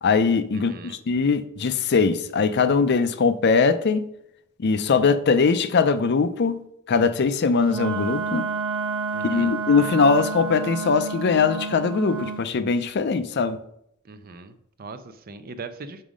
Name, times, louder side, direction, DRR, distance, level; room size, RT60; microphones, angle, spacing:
voice 1, 0.0-4.1 4.6-6.6 6.9-8.4 9.2-13.6, left 5 dB, 50° left, 0.5 m, -21 dB
voice 2, 0.5-1.0 9.1-9.6 14.0-16.0, right 3 dB, 45° right, 0.5 m, -40 dB
Wind instrument woodwind instrument, 7.6-12.4, right 4 dB, 25° right, 1.0 m, -29 dB
6.2 x 5.5 x 4.9 m
head